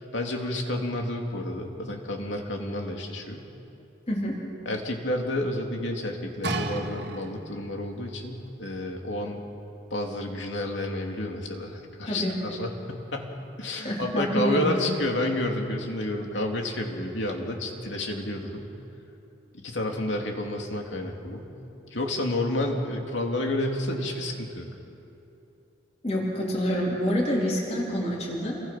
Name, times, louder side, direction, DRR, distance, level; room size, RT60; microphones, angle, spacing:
voice 1, 0.0-3.4 4.6-9.4 9.9-18.7 19.6-21.5 21.9-24.7, left 1 dB, 80° left, 2 dB, 2.8 m, -30 dB
voice 2, 4.1-4.4 12.1-12.3 13.8-14.9 26.0-28.6, equal, 35° left, -3 dB, 3.9 m, -27 dB
sound 1, 6.4-7.7 8.5-8.6, right 2 dB, 60° right, 2.0 m, -32 dB
29.0 x 23.5 x 5.9 m, 2.9 s
head